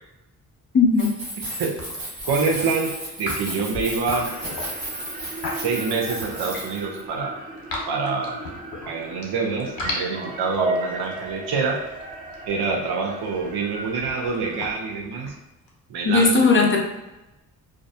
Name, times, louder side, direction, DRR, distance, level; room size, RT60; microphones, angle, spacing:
voice 1, 0.7-1.1 16.0-16.8, left 4 dB, 30° left, 1 dB, 0.5 m, -17 dB
Keys jangling, 0.9-7.0, right 1 dB, 90° right, 1.2 m, -34 dB
sound 1, 1.3-1.5 1.8-2.4 3.1-6.8 7.2-9.2 9.6-15.7, left 2 dB, 55° left, 0.8 m, -36 dB
voice 2, 2.3-2.9 3.2-4.3 5.6-7.4 7.9-8.4 8.9-11.8 12.5-15.3 15.9-16.7, right 4 dB, 65° right, 0 dB, 0.7 m, -26 dB
sound 2, 4.1-14.7, right 2 dB, 20° right, 0.5 m, -35 dB
2.4 x 2.1 x 2.6 m, 0.98 s
supercardioid pair, 55°, 42 cm